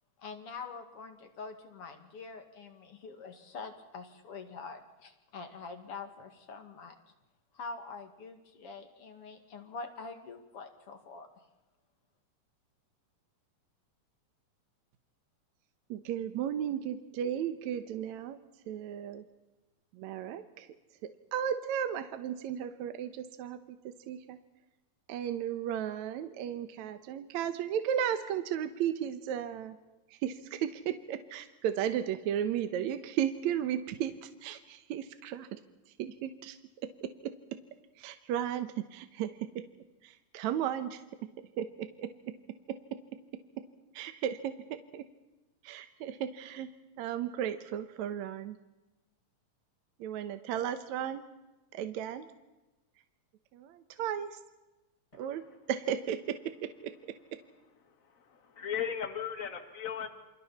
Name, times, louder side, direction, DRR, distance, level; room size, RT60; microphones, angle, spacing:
voice 1, 0.2-7.0 7.5-11.3, left 4 dB, 50° left, 6 dB, 2.9 m, -45 dB
voice 2, 15.9-18.4 18.7-19.2 19.9-20.7 21.0-23.6 23.8-24.4 25.1-29.8 30.1-35.6 36.0-36.6 37.0-37.3 38.0-39.4 40.0-41.0 41.6-42.1 42.7-42.8 43.9-45.0 45.6-46.7 47.0-48.6 50.0-51.3 51.7-52.3 53.5-54.4 55.2-55.4 55.7-56.9, right 9 dB, 75° right, 9 dB, 2.2 m, -35 dB
voice 3, 58.3-60.1, left 8 dB, 30° left, 7 dB, 2.0 m, -36 dB
28.5 x 27.0 x 4.2 m, 1.1 s
omnidirectional pair, 3.4 m